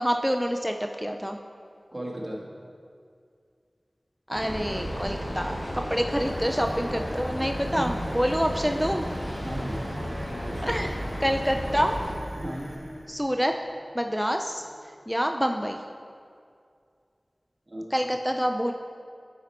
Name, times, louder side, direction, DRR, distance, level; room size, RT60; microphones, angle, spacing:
voice 1, 0.0-1.4 4.3-9.1 10.6-12.0 13.1-13.5 13.9-14.6 15.1-15.8 17.9-18.7, equal, ahead, 4 dB, 0.4 m, -27 dB
voice 2, 1.9-2.4 7.7-8.0 9.4-9.8 10.4-10.8 12.3-12.8 17.7-17.9, equal, 30° right, -4 dB, 1.6 m, -35 dB
Train, 4.3-12.1, equal, 40° left, 1.6 m, -33 dB
sound 1, 6.1-15.7, equal, 60° right, 1.7 m, -41 dB
11.0 x 4.2 x 4.3 m, 2.3 s
wide cardioid pair, 40°, 0 cm